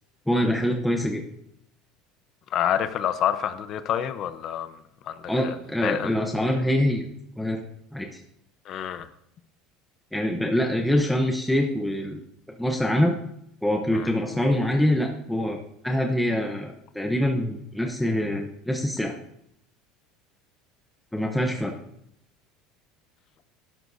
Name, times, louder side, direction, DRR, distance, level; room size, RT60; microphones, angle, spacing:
voice 1, 0.3-1.2 5.3-7.1 7.4-7.6 7.9-8.2 10.1-12.2 12.6-13.1 13.6-15.6 15.8-19.1 21.1-21.8, left 1 dB, 5° left, 0.8 m, -24 dB
voice 2, 2.5-4.7 5.1-5.2 5.4-5.5 5.8-6.1 8.7-9.1 13.9-14.0, left 10 dB, 35° left, 0.8 m, -27 dB
18.0 x 12.0 x 2.7 m
cardioid pair, 165°, 0 cm